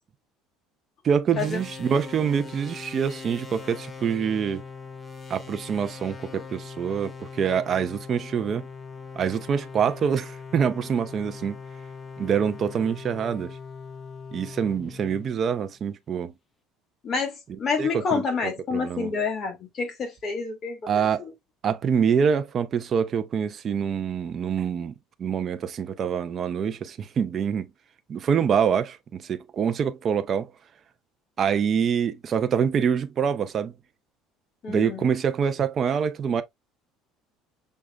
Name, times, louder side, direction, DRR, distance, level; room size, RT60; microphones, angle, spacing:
voice 1, 1.0-4.6 5.3-8.7 9.2-11.6 12.2-13.6 14.3-16.3 17.8-19.1 20.9-21.2 21.6-24.9 25.2-27.7 28.1-30.5 31.4-33.7 34.7-36.4, right 7 dB, 30° right, 0.5 m, -25 dB
sound 1, 1.3-15.9, left 5 dB, 10° left, 0.9 m, -41 dB
voice 2, 17.0-20.9 21.2-21.3 34.6-35.1, left 5 dB, 30° left, 1.8 m, -28 dB
6.3 x 3.4 x 2.3 m
cardioid pair, 150°, 0 cm